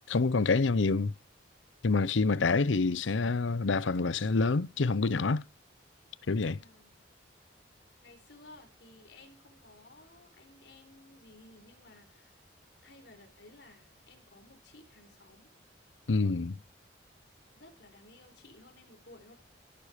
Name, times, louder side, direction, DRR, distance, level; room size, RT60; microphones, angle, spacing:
voice 1, 0.1-1.1 1.8-5.4 6.3-6.6 16.1-16.6, left 3 dB, 85° left, 0.7 m, -27 dB
voice 2, 6.6-7.0 7.8-12.4 12.8-15.5 17.5-19.3, left 2 dB, 65° left, 4.1 m, -56 dB
16.0 x 11.5 x 5.0 m
head